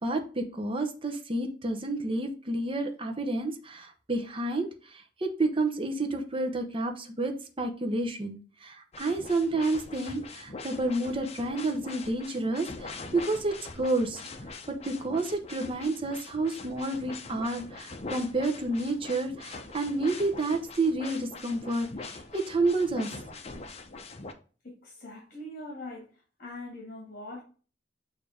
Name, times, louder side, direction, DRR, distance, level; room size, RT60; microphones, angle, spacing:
voice 1, 0.0-14.2 14.7-23.1, right 2 dB, 30° right, 4 dB, 0.8 m, -30 dB
sound 1, 8.9-24.3, left 3 dB, 35° left, 0.7 m, -43 dB
voice 2, 24.6-26.1 26.4-27.4, left 1 dB, 55° left, -1 dB, 1.7 m, -42 dB
6.9 x 2.8 x 4.9 m, 0.38 s
head